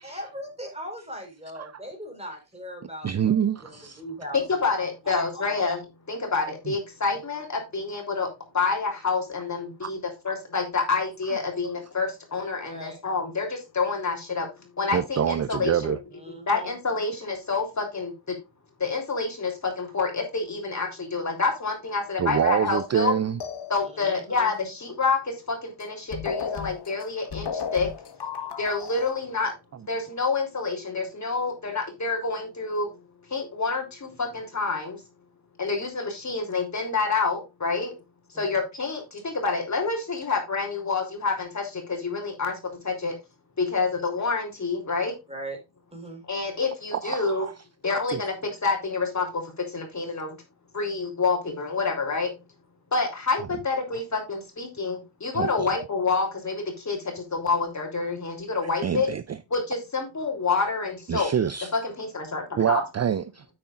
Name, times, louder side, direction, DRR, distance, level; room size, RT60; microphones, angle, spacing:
voice 1, 0.0-4.4 4.7-5.7 12.6-13.0 16.1-16.8 23.8-24.5 38.3-38.6 45.3-45.6 45.9-46.2, equal, 15° right, 4.2 m, -39 dB
voice 2, 3.0-4.0 9.8-9.9 14.9-16.0 22.2-23.4 46.9-47.5 47.9-48.2 53.9-54.0 55.3-55.7 58.8-59.4 61.1-61.7 62.6-63.4, right 9 dB, 35° right, 0.5 m, -26 dB
voice 3, 4.3-5.8 6.1-8.3 8.5-10.0 10.2-14.5 14.8-16.0 16.3-18.4 18.8-23.1 23.7-27.9 28.6-29.5 29.9-32.9 33.3-35.0 35.6-37.9 38.3-43.2 43.6-45.1 46.3-47.5 47.8-50.4 50.7-52.4 52.9-59.1 59.5-61.3 61.7-62.8, left 4 dB, 40° left, 3.4 m, -28 dB
sound 1, 23.4-24.2 25.8-25.9 26.1-29.1, left 7 dB, 65° left, 1.6 m, -34 dB
9.5 x 8.7 x 2.5 m
wide cardioid pair, 120°, 44 cm